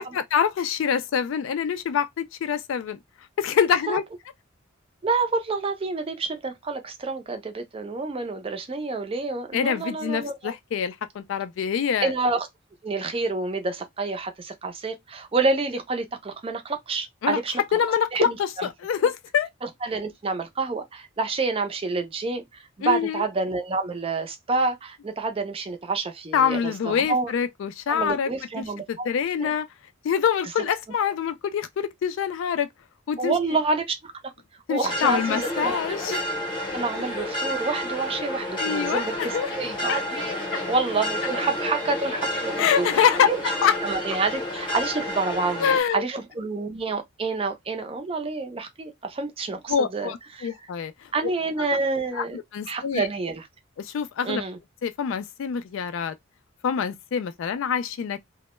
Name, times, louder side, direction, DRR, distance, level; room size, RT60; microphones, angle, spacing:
voice 1, 0.0-3.0 3.4-4.0 9.5-12.1 17.2-17.4 17.7-18.3 18.8-19.5 22.8-23.3 26.3-29.7 30.0-32.7 33.1-33.3 34.7-36.2 38.6-39.5 39.9-40.0 40.5-40.6 42.6-43.8 45.6-46.0 49.7-51.1 52.1-52.2 52.5-53.1 53.8-54.4 54.8-56.1 56.6-58.3, left 7 dB, 65° left, 0.3 m, -25 dB
voice 2, 5.0-10.5 12.0-12.5 12.8-17.5 18.1-18.7 19.6-22.4 22.8-27.3 27.9-29.1 29.4-29.5 33.2-34.3 34.7-36.2 36.7-42.9 43.2-43.4 43.8-50.5 51.1-52.4 52.7-53.4 54.2-54.6, right 3 dB, 25° right, 0.4 m, -28 dB
sound 1, 34.8-45.8, left 1 dB, 25° left, 0.7 m, -30 dB
2.1 x 2.1 x 2.9 m
head